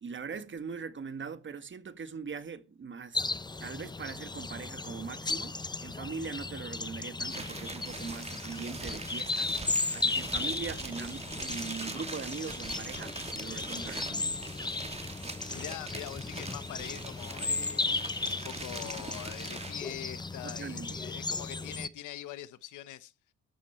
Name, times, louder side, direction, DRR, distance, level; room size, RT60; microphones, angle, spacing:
voice 1, 0.0-3.3 3.6-9.5 9.9-14.4 20.4-21.0, right 5 dB, 40° right, 1.5 m, -41 dB
sound 1, 3.1-21.9, left 3 dB, 15° left, 0.7 m, -36 dB
sound 2, 7.2-19.9, right 3 dB, 20° right, 2.6 m, -42 dB
voice 2, 15.5-17.8 18.3-23.1, left 13 dB, 85° left, 1.2 m, -43 dB
13.0 x 12.0 x 4.5 m
cardioid pair, 90°, 30 cm